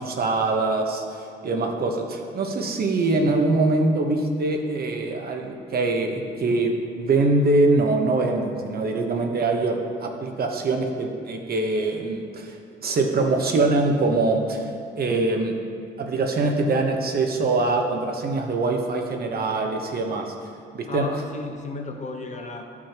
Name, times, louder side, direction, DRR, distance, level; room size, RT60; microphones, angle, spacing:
voice 1, 0.0-12.6 12.8-14.7 15.0-15.6 16.0-20.3 20.7-21.0, right 3 dB, 50° right, 2 dB, 1.1 m, -23 dB
voice 2, 20.9-22.6, left 2 dB, 35° left, 3 dB, 1.0 m, -34 dB
12.5 x 6.2 x 2.9 m, 2.3 s
cardioid pair, 90°, 20 cm